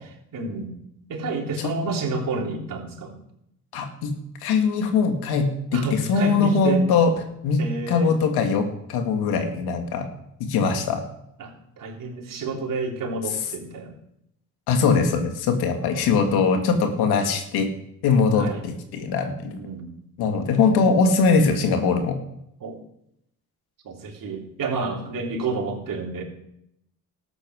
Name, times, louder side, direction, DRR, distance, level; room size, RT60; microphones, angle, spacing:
voice 1, 0.3-0.8 1.1-3.2 5.7-6.8 7.6-8.1 11.4-11.5 11.8-13.9 15.8-16.0 18.4-18.6 19.6-20.0 22.6-22.8 23.8-26.2, right 3 dB, 60° right, 0 dB, 3.5 m, -29 dB
voice 2, 3.7-4.1 4.4-7.1 7.4-7.6 7.9-10.1 10.4-11.0 14.7-17.7 18.0-19.6 20.2-22.2, left 5 dB, 85° left, 5 dB, 2.3 m, -21 dB
13.5 x 8.9 x 6.4 m, 0.77 s
supercardioid pair, 75°, 37 cm